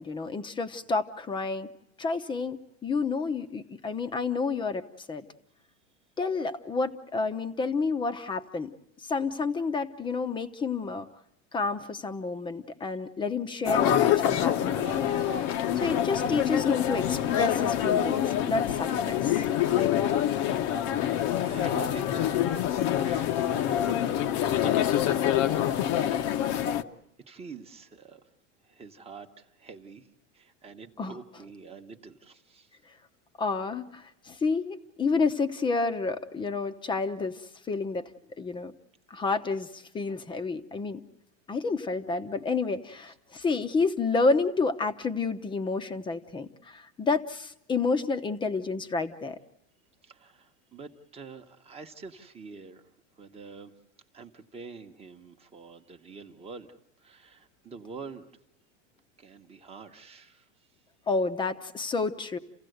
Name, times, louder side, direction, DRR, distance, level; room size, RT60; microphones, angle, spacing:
voice 1, 0.0-1.7 2.0-5.3 6.2-8.7 9.0-11.1 11.5-15.4 15.8-19.4 31.0-31.2 33.4-38.0 38.4-38.7 39.1-41.0 41.5-49.4 61.1-62.4, left 4 dB, 15° left, 10 dB, 0.8 m, -30 dB
sound 1, 13.7-26.8, left 10 dB, 45° left, 0.9 m, -26 dB
voice 2, 21.4-24.8 25.6-26.5 27.2-28.2 28.6-30.1 30.3-32.7 43.1-43.2 50.0-52.8 53.2-53.7 54.1-58.3 59.2-60.5, right 4 dB, 15° right, 4 dB, 1.1 m, -46 dB
29.5 x 16.0 x 7.9 m, 0.84 s
supercardioid pair, 150°, 37 cm